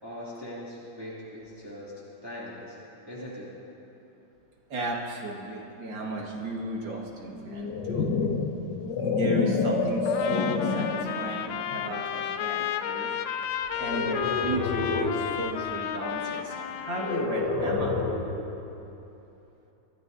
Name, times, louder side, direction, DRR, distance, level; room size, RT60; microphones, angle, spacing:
voice 1, 0.0-1.9 2.2-2.8 3.1-3.5, left 1 dB, 10° right, -10 dB, 2.6 m, -40 dB
voice 2, 4.7-8.1 9.0-13.1 13.8-17.9, right 1 dB, 75° right, -2 dB, 2.5 m, -34 dB
sound 1, 7.4-11.1 11.7-12.0 13.8-15.3 17.0-18.4, left 4 dB, 65° left, 1.7 m, -28 dB
Trumpet, 10.1-17.4, left 9 dB, 85° left, 1.4 m, -32 dB
27.0 x 13.5 x 2.7 m, 2.9 s
omnidirectional pair, 2.1 m